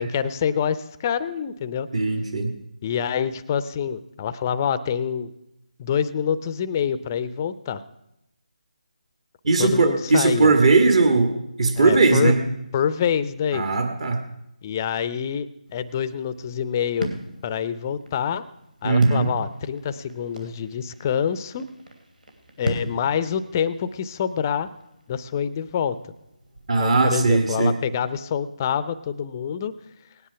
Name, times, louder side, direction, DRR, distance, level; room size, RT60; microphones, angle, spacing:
voice 1, 0.0-1.9 2.8-5.3 5.8-7.8 9.6-10.5 11.8-12.3 12.7-13.7 14.6-15.5 15.7-17.1 17.4-18.4 18.8-21.7 22.6-24.7 25.1-26.0 26.8-29.7, left 8 dB, 25° left, 14 dB, 0.5 m, -26 dB
voice 2, 1.9-2.5 9.4-11.3 11.6-12.4 13.5-14.2 18.8-19.3 26.7-27.7, right 3 dB, 50° right, 5 dB, 1.8 m, -19 dB
sound 1, 15.7-27.4, right 1 dB, 80° right, 2.9 m, -38 dB
18.0 x 10.0 x 5.7 m, 0.85 s
figure-of-eight pair, 160°, 4 cm